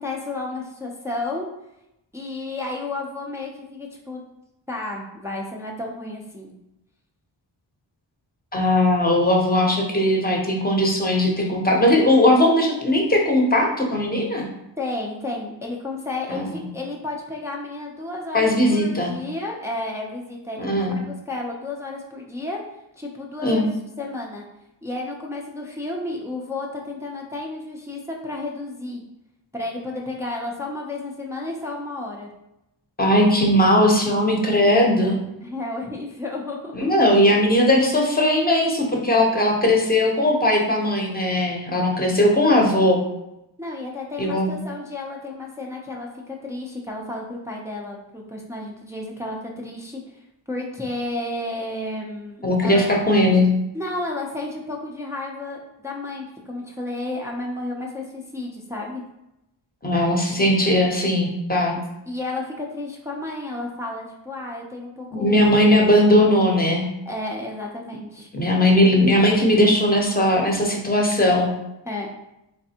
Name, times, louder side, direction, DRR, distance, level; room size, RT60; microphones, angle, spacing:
voice 1, 0.0-1.4 2.1-4.2 4.7-6.5 14.8-20.9 21.3-22.6 23.0-23.7 24.0-24.5 24.8-29.0 29.5-32.3 35.4-36.9 43.6-50.2 50.5-52.8 53.7-59.0 62.1-65.5 67.1-68.3 71.8-72.1, left 2 dB, 5° right, -2 dB, 0.5 m, -32 dB
voice 2, 8.5-14.5 16.3-16.6 18.3-19.1 20.6-21.0 23.4-23.6 33.0-35.2 36.7-43.0 44.2-44.6 52.4-53.5 59.8-61.8 65.1-66.9 68.3-71.5, left 1 dB, 20° left, -1 dB, 0.7 m, -18 dB
3.4 x 3.2 x 2.8 m, 0.88 s
wide cardioid pair, 85°, 45 cm